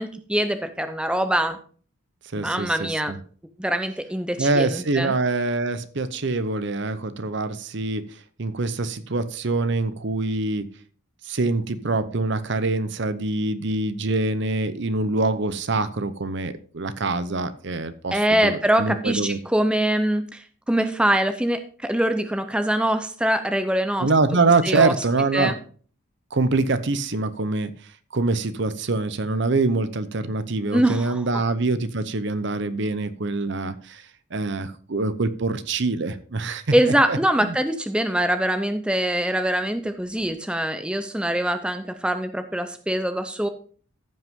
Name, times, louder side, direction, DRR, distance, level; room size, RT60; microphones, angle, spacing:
voice 1, 0.0-1.6 2.3-3.1 3.6-5.1 18.1-24.1 24.6-24.9 25.3-25.5 30.7-31.2 36.7-43.5, right 1 dB, 5° right, 9 dB, 0.6 m, -23 dB
voice 2, 2.3-3.2 4.4-8.1 8.4-10.7 11.2-19.4 24.0-25.5 26.3-27.7 28.1-34.0 34.3-36.6 37.1-37.5, right 3 dB, 55° right, 13 dB, 0.7 m, -24 dB
15.0 x 5.5 x 3.6 m, 0.42 s
head